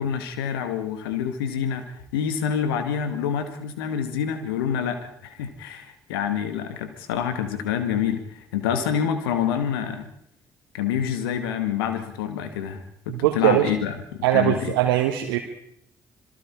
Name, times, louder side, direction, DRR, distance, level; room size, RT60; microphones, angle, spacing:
voice 1, 0.0-1.8 2.1-10.1 10.7-14.7, left 8 dB, 75° left, 9 dB, 2.2 m, -27 dB
voice 2, 13.1-13.7 14.2-15.4, right 14 dB, 75° right, 3 dB, 1.6 m, -21 dB
26.5 x 23.0 x 4.9 m, 0.73 s
figure-of-eight pair, 45°, 12 cm